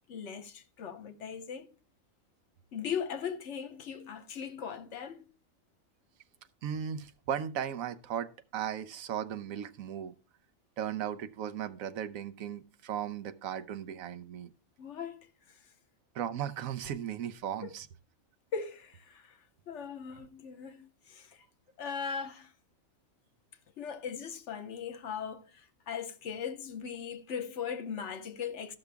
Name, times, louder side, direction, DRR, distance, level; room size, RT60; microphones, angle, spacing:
voice 1, 0.1-1.7 2.7-5.3 14.8-15.6 17.6-17.7 18.5-19.4 19.7-21.4 21.8-22.5 23.8-28.8, left 7 dB, 65° left, 1.1 m, -39 dB
voice 2, 6.6-10.1 10.8-14.5 16.1-17.9, right 9 dB, 85° right, 1.1 m, -36 dB
14.0 x 5.9 x 3.4 m
omnidirectional pair, 1.4 m